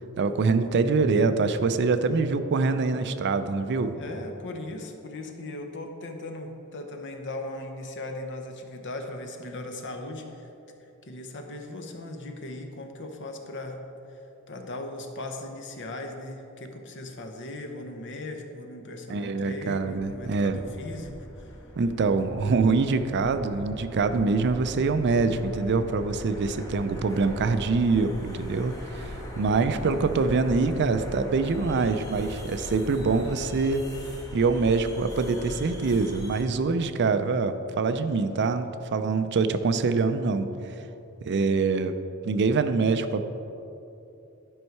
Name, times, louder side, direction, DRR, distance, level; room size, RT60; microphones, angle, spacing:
voice 1, 0.2-4.0 19.1-20.6 21.8-33.9 34.3-40.5 41.2-41.9 42.2-43.2, right 4 dB, 55° right, 10 dB, 0.4 m, -24 dB
voice 2, 3.9-10.5 10.8-21.6, left 2 dB, 55° left, 4 dB, 0.9 m, -38 dB
sound 1, 19.7-36.4, equal, 15° left, 1.2 m, -40 dB
11.0 x 5.4 x 4.6 m, 2.9 s
head